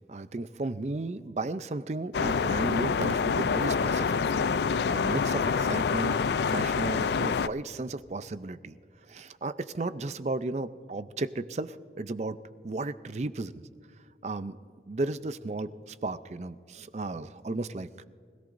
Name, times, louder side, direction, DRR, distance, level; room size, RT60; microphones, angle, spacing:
voice 1, 0.0-4.6 4.9-8.7 9.1-12.4 12.6-13.6 14.2-14.6 14.9-17.9, right 2 dB, 40° right, 13 dB, 0.5 m, -34 dB
sound 1, 2.1-7.5, left 5 dB, 70° left, 0.4 m, -27 dB
25.5 x 16.5 x 2.6 m, 2.4 s
head